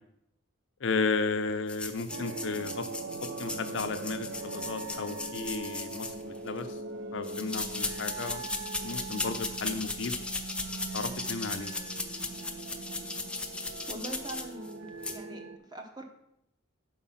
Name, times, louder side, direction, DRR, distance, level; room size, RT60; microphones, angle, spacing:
voice 1, 0.8-2.9 3.4-6.8 7.1-8.4 8.8-10.2 10.9-11.7, left 4 dB, 70° left, 8 dB, 0.6 m, -34 dB
sound 1, 1.7-6.6 7.2-14.7 15.0-15.2, left 3 dB, 5° left, 0.5 m, -37 dB
sound 2, 2.1-15.6, right 3 dB, 75° right, 0.5 m, -41 dB
voice 2, 13.9-15.4 15.7-16.1, right 1 dB, 20° right, 2 dB, 0.9 m, -42 dB
5.6 x 4.5 x 5.7 m, 0.81 s
head